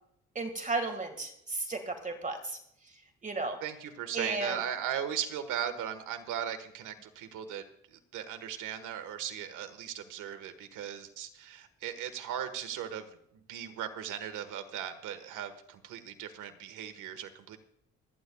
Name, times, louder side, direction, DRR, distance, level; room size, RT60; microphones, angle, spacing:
voice 1, 0.4-2.4 3.2-3.6 4.1-4.6, right 3 dB, 25° right, 6 dB, 1.9 m, -33 dB
voice 2, 3.6-7.6 7.9-13.1 13.5-17.6, right 9 dB, 85° right, 8 dB, 1.5 m, -38 dB
27.0 x 10.0 x 2.3 m, 0.73 s
cardioid pair, 90°, 30 cm